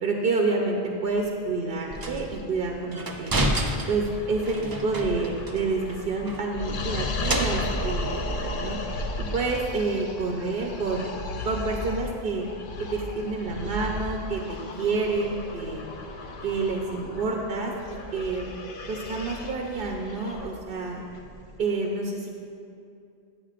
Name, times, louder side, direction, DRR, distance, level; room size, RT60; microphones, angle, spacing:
voice 1, 0.0-3.4 3.9-8.8 9.2-11.1 11.4-12.5 12.8-15.8 16.4-17.7 18.1-18.5 18.9-21.0 21.6-22.3, right 3 dB, 60° right, 0 dB, 0.9 m, -28 dB
sound 1, 1.1-1.2 2.0-2.3 2.9-5.6 5.9-6.0 6.2-7.9, right 1 dB, 35° right, 0.4 m, -30 dB
sound 2, 1.9-21.6, left 2 dB, 60° left, 0.8 m, -35 dB
9.8 x 8.4 x 2.5 m, 2.5 s
omnidirectional pair, 1.1 m